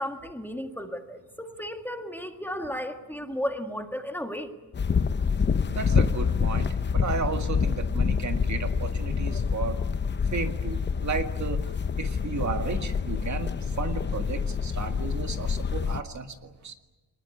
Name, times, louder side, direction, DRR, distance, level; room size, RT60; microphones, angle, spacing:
voice 1, 0.0-4.5, equal, 5° left, 5 dB, 1.8 m, -34 dB
sound 1, 4.7-16.0, left 6 dB, 30° left, 0.7 m, -27 dB
voice 2, 5.7-9.8 10.3-11.6 12.0-16.7, right 5 dB, 50° right, 6 dB, 2.0 m, -34 dB
24.0 x 20.5 x 9.7 m, 1.2 s
cardioid pair, 130°, 38 cm